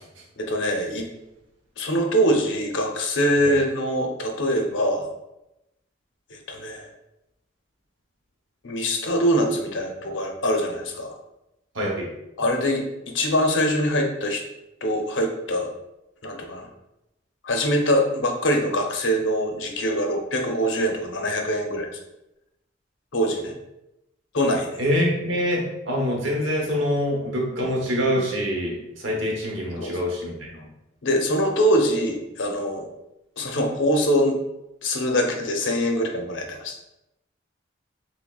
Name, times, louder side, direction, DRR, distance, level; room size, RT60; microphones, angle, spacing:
voice 1, 0.4-1.1 1.8-5.1 6.3-6.9 8.6-11.1 12.4-14.4 14.8-15.7 16.2-16.7 17.4-21.9 23.1-23.5 24.3-24.7 27.6-27.7 29.8-30.0 31.0-32.8 33.4-34.4 34.8-36.9, equal, 70° left, 2 dB, 0.6 m, -23 dB
voice 2, 11.7-12.1 24.8-30.6, equal, 75° right, -1 dB, 0.9 m, -25 dB
6.0 x 2.1 x 2.3 m, 0.90 s
head